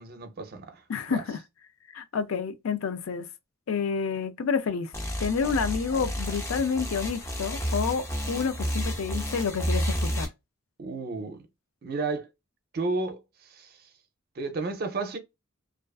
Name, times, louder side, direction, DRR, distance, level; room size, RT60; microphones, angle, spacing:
voice 1, 0.0-0.8 1.1-1.2 10.8-11.5 11.8-12.3 12.7-13.7 14.4-15.2, right 3 dB, 50° right, 0.5 m, -32 dB
voice 2, 0.9-1.4 1.9-3.3 3.7-4.9 5.2-10.3, left 5 dB, 80° left, 0.4 m, -29 dB
sound 1, 4.9-10.3, equal, 15° left, 0.5 m, -31 dB
2.4 x 2.3 x 2.3 m
head